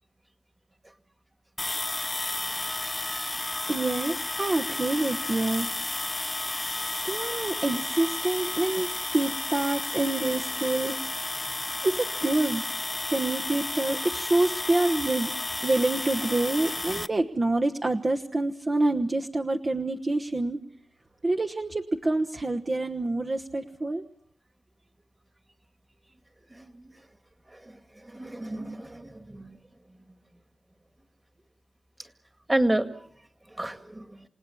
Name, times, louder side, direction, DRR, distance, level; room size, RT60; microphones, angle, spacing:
sound 1, 1.6-17.1, left 2 dB, 25° left, 0.9 m, -32 dB
voice 1, 3.7-5.7 7.0-11.0 11.8-12.6 13.1-15.3 15.6-20.6 21.2-24.0, right 2 dB, 40° right, 4 dB, 1.2 m, -27 dB
voice 2, 26.5-26.9 27.6-27.8 28.0-29.6 32.5-32.9 33.6-34.2, right 1 dB, 20° right, 9 dB, 2.0 m, -30 dB
29.0 x 18.0 x 7.2 m, 0.63 s
wide cardioid pair, 80°, 0 cm